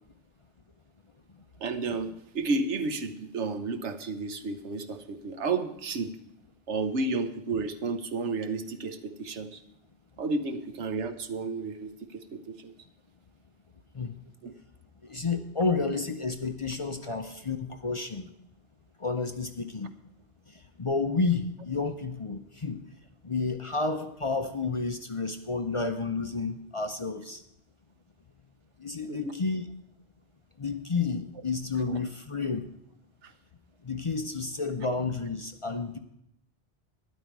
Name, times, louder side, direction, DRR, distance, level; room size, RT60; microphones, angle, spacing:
voice 1, 1.6-6.1 6.7-9.6 10.2-12.7 14.4-14.5 15.7-15.8 29.1-29.3 31.9-32.0 33.2-33.3, right 3 dB, 85° right, 9 dB, 1.2 m, -32 dB
voice 2, 15.0-18.3 19.0-19.9 20.5-22.8 23.2-27.4 28.8-29.7 30.6-32.7 33.8-36.0, left 4 dB, 35° left, 6 dB, 0.6 m, -31 dB
12.5 x 11.0 x 4.7 m, 0.78 s
omnidirectional pair, 1.2 m